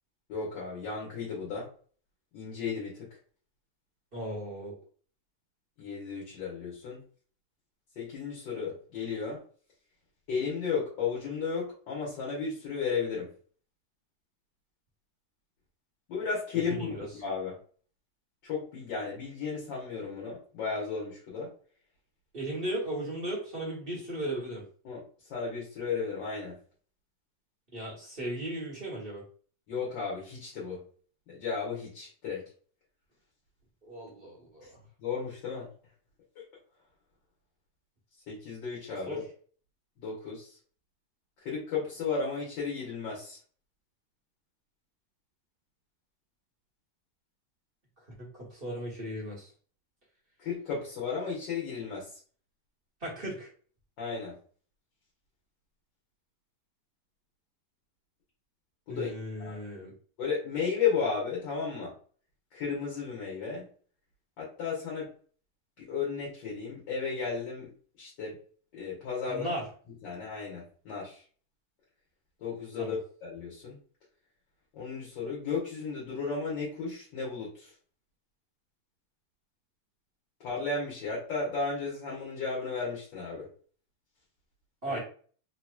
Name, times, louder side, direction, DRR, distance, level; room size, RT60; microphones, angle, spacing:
voice 1, 0.3-1.7 2.3-3.1 5.8-7.0 8.0-9.4 10.3-13.3 16.1-17.6 18.4-21.5 24.8-25.0 25.3-26.6 29.7-30.8 31.3-32.5 35.0-35.7 36.4-36.5 38.3-39.2 40.0-40.6 41.4-43.4 50.4-52.1 54.0-54.4 58.9-59.1 59.4-59.6 60.2-61.9 62.5-63.7 64.4-65.1 65.8-67.7 68.0-68.4 68.7-69.5 70.0-71.2 72.4-73.8 74.7-77.7 80.4-83.5 84.8-85.0, left 5 dB, 60° left, -4 dB, 1.8 m, -34 dB
voice 2, 4.1-4.8 16.7-17.1 22.3-24.6 27.7-29.2 33.8-34.8 39.1-39.2 48.2-49.5 53.0-53.5 58.9-59.9 69.3-69.6 72.8-73.0 84.8-85.0, right 1 dB, 30° right, -5 dB, 1.1 m, -36 dB
4.1 x 2.9 x 2.3 m, 0.43 s
omnidirectional pair, 2.4 m